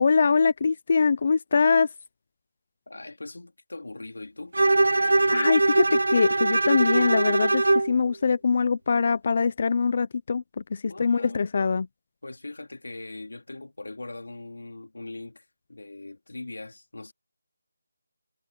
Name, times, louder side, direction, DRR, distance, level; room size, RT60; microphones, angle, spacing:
voice 1, 0.0-1.9 4.9-11.9, left 5 dB, 30° left, 0.5 m, -23 dB
voice 2, 2.9-4.5 10.8-11.5 12.2-17.1, left 2 dB, 85° left, 2.9 m, -40 dB
Bowed string instrument, 4.5-7.9, right 2 dB, 85° right, 0.6 m, -21 dB
figure-of-eight pair, 175°, 0 cm